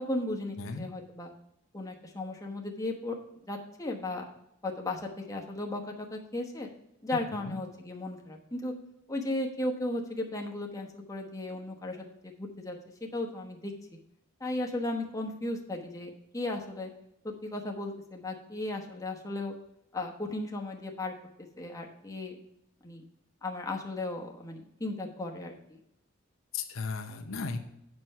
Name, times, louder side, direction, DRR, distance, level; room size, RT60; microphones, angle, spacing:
voice 1, 0.0-1.3 1.7-3.2 3.5-4.3 4.6-6.7 7.0-8.7 9.1-12.8 13.1-13.7 14.4-16.9 17.2-19.6 19.9-21.1 21.6-22.3 22.8-23.0 23.4-25.8, left 2 dB, 15° left, 1 dB, 1.1 m, -35 dB
voice 2, 0.6-0.9 7.1-7.6 26.5-27.6, left 4 dB, 75° left, 6 dB, 0.8 m, -36 dB
7.7 x 6.1 x 5.5 m, 0.80 s
head